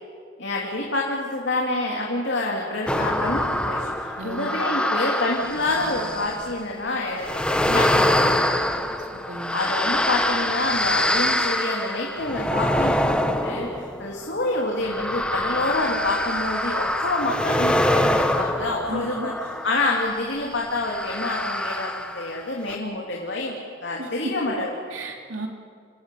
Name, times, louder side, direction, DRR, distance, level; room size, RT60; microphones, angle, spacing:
voice 1, 0.4-8.6 9.5-19.3 19.6-23.5 23.8-24.7, left 2 dB, 65° left, -2 dB, 2.9 m, -27 dB
sound 1, 2.9-6.5 7.2-20.0 20.8-22.4 22.7-22.8, left 1 dB, 5° left, 1.2 m, -25 dB
voice 2, 4.2-4.6 9.1-9.5 18.9-19.3 24.0-24.1 24.9-25.5, right 1 dB, 90° right, 1 dB, 3.4 m, -34 dB
28.5 x 17.0 x 8.5 m, 2.1 s
head